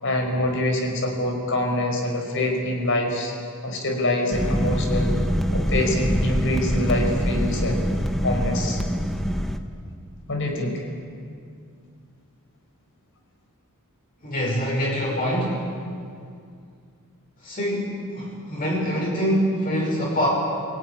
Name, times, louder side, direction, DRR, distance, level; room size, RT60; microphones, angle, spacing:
voice 1, 0.0-3.3 3.6-5.2 5.5-7.8 8.2-8.8 10.3-10.8, left 1 dB, 60° left, 2 dB, 5.9 m, -25 dB
sound 1, 4.3-9.6, equal, ahead, 1.3 m, -24 dB
voice 2, 14.2-15.7 17.4-20.3, equal, 40° left, -4 dB, 6.0 m, -25 dB
29.5 x 18.0 x 10.0 m, 2.3 s
head